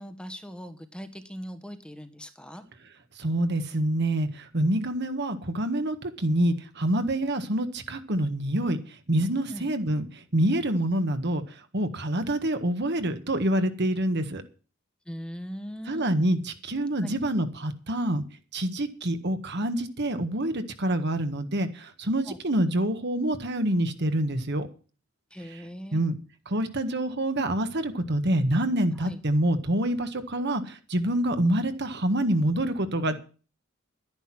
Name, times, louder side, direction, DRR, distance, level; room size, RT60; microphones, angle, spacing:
voice 1, 0.0-2.6 9.5-9.7 15.1-16.1 17.0-17.2 22.3-22.4 25.3-26.0 28.9-29.2, equal, 5° left, 9 dB, 1.3 m, -40 dB
voice 2, 3.2-8.8 9.1-10.1 10.3-11.4 11.7-14.4 15.9-18.2 18.5-24.7 25.5-25.6 25.9-26.1 26.4-33.2, right 1 dB, 55° right, 9 dB, 1.7 m, -26 dB
11.5 x 10.5 x 6.1 m, 0.37 s
head